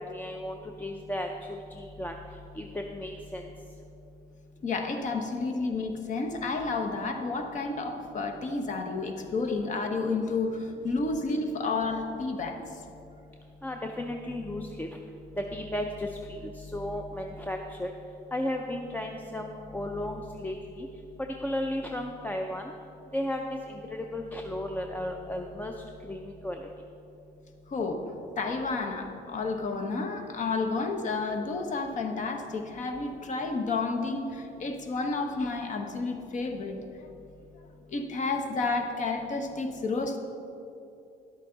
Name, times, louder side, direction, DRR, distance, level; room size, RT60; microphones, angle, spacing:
voice 1, 0.0-2.1 2.6-3.4 13.6-14.9 15.4-16.1 16.4-17.9 18.3-20.9 21.4-22.6 23.1-23.4 23.7-23.8 24.1-25.7 26.1-26.6, left 1 dB, 10° left, 3 dB, 0.5 m, -34 dB
voice 2, 4.6-12.6 27.7-28.1 28.4-36.8 37.9-40.2, left 3 dB, 45° left, 5 dB, 1.1 m, -31 dB
11.0 x 8.2 x 3.9 m, 2.7 s
cardioid pair, 110°, 17 cm